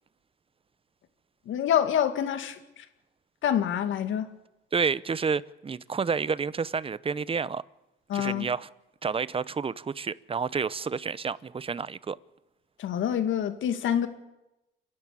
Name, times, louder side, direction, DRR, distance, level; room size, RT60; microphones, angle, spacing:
voice 1, 1.5-2.9 3.4-4.3 8.1-8.5 12.8-14.1, left 9 dB, 80° left, 2.1 m, -26 dB
voice 2, 4.7-7.6 8.1-8.7 9.0-12.2, right 5 dB, 30° right, 0.8 m, -29 dB
29.0 x 11.0 x 8.5 m
cardioid pair, 90°, 20 cm